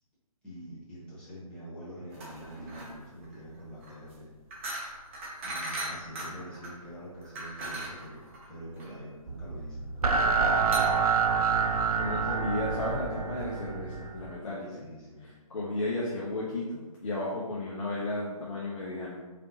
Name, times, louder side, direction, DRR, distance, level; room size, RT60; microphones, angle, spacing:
voice 1, 0.4-4.3 5.4-12.3 14.6-15.3, equal, 5° left, -12 dB, 1.2 m, -46 dB
sound 1, 2.1-12.1, right 1 dB, 20° right, 0.6 m, -40 dB
sound 2, 9.3-14.4, right 5 dB, 75° right, 0.5 m, -27 dB
voice 2, 12.0-14.8 15.5-19.2, left 2 dB, 60° left, -6 dB, 1.0 m, -34 dB
4.2 x 3.4 x 2.9 m, 1.2 s
figure-of-eight pair, 150°, 19 cm